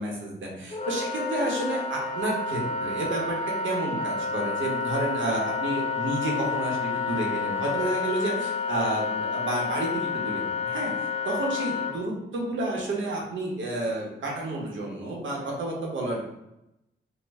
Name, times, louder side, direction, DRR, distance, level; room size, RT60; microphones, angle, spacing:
voice 1, 0.0-3.4 3.6-16.2, right 1 dB, 70° right, -2 dB, 1.0 m, -30 dB
Wind instrument woodwind instrument, 0.7-11.9, left 4 dB, 30° left, 0.4 m, -30 dB
3.1 x 2.3 x 3.5 m, 0.87 s
wide cardioid pair, 125°, 21 cm